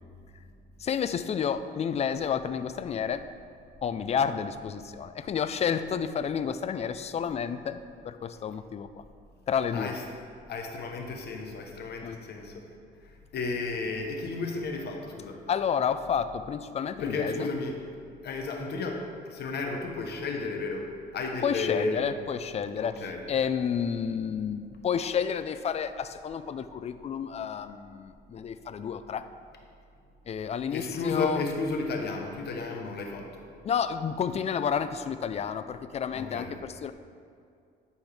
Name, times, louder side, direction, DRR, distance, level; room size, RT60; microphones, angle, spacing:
voice 1, 0.8-3.3 3.8-7.8 8.0-9.0 9.5-10.0 12.0-12.2 15.5-17.5 21.4-29.3 30.3-31.4 33.6-36.9, left 7 dB, 35° left, 12 dB, 0.4 m, -30 dB
voice 2, 10.5-12.7 13.0-15.4 17.0-17.8 18.2-22.1 22.8-23.2 30.7-33.4 36.1-36.5, left 3 dB, 60° left, 2 dB, 1.1 m, -33 dB
11.0 x 4.5 x 3.4 m, 2.3 s
cardioid pair, 95°, 19 cm